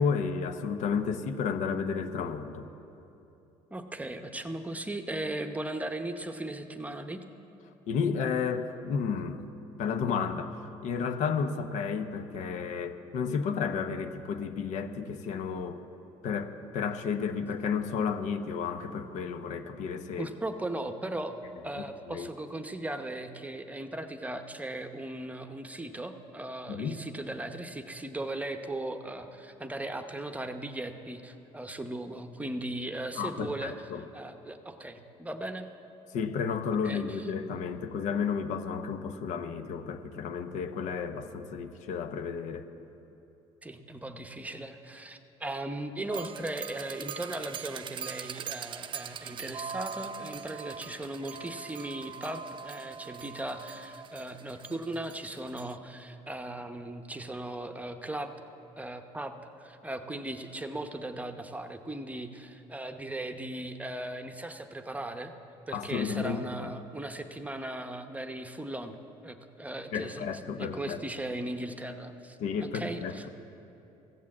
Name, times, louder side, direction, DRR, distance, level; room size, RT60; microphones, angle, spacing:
voice 1, 0.0-2.6 7.9-9.4 9.8-15.8 16.2-20.3 22.1-22.3 26.7-27.0 33.2-34.0 36.1-42.7 65.7-66.7 69.9-71.0 72.4-73.3, left 6 dB, 70° left, 8 dB, 0.8 m, -32 dB
voice 2, 3.7-7.2 20.2-21.3 21.6-35.7 36.8-37.3 43.6-58.3 58.8-65.3 65.7-69.0 69.2-73.3, right 1 dB, 10° right, 7 dB, 0.8 m, -38 dB
sound 1, 46.1-55.7, right 7 dB, 40° right, 0.4 m, -41 dB
15.0 x 7.4 x 7.3 m, 2.9 s
supercardioid pair, 90°, 13 cm